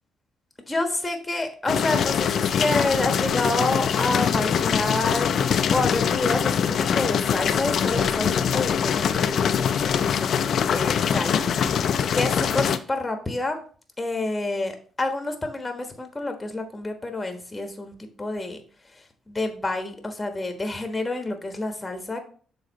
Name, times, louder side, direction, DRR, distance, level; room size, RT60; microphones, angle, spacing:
voice 1, 0.6-5.4 5.7-10.3 10.7-13.6 14.0-18.6 18.9-22.2, left 2 dB, 15° left, 5 dB, 1.3 m, -28 dB
sound 1, 1.7-12.8, left 7 dB, 60° left, 0.5 m, -23 dB
6.6 x 3.9 x 4.0 m, 0.43 s
cardioid pair, 90°, 0 cm